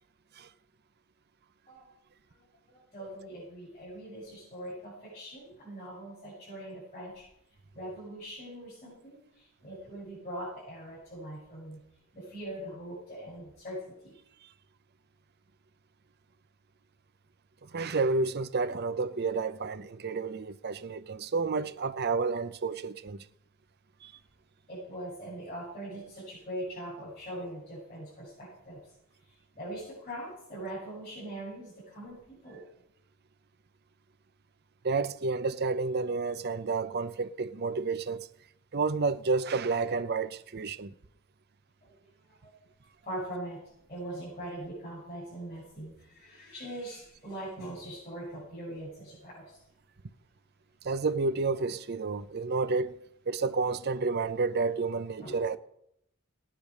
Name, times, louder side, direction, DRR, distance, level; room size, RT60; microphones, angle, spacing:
voice 1, 2.7-7.2 7.7-9.2 9.6-11.8 12.1-14.1 24.7-28.8 29.6-32.6 43.1-43.6 43.9-49.4 55.2-55.4, right 1 dB, 35° left, 7.6 m, -41 dB
voice 2, 17.6-23.2 24.0-24.1 34.8-38.3 38.7-40.9 50.8-53.0 53.3-55.6, right 4 dB, 50° right, 0.6 m, -30 dB
18.0 x 10.0 x 5.2 m
head